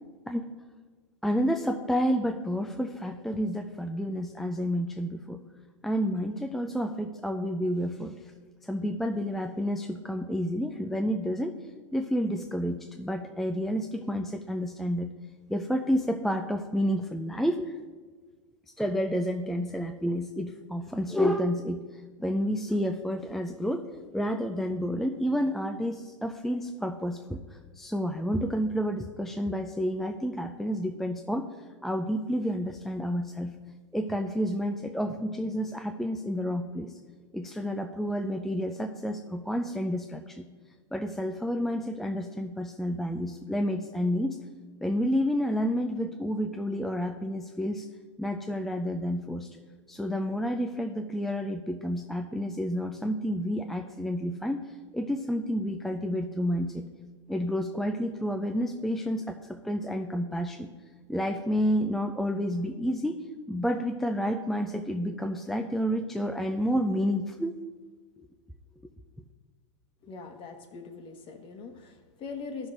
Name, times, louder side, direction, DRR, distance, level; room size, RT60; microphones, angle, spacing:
voice 1, 0.3-0.6 1.2-5.4 5.8-8.2 8.6-11.6 11.9-15.1 15.5-17.7 18.8-21.8 22.2-27.4 27.8-31.5 31.8-33.5 33.9-37.0 37.3-40.4 40.9-44.4 44.8-47.9 48.2-49.5 49.9-54.6 54.9-56.8 57.3-60.7 61.1-67.5, equal, ahead, 4 dB, 0.3 m, -30 dB
voice 2, 70.0-72.7, left 4 dB, 35° left, 6 dB, 1.1 m, -41 dB
15.0 x 6.1 x 2.5 m, 1.4 s
figure-of-eight pair, 95°, 16 cm